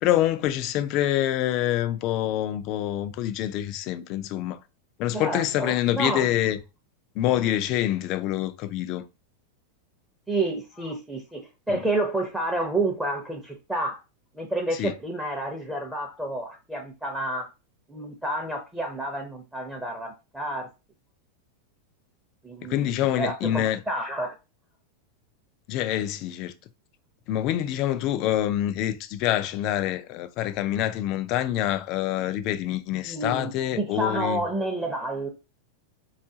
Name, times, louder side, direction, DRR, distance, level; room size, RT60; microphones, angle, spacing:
voice 1, 0.0-4.6 5.0-6.6 7.2-9.1 11.7-11.8 14.7-14.9 22.7-23.8 25.7-26.5 27.3-34.4, left 12 dB, 45° left, 0.4 m, -26 dB
voice 2, 5.1-6.3 10.3-14.0 14.3-17.5 17.9-20.7 22.4-24.3 33.0-35.3, right 2 dB, 5° right, 0.6 m, -30 dB
3.6 x 2.4 x 2.7 m
supercardioid pair, 130°, 0 cm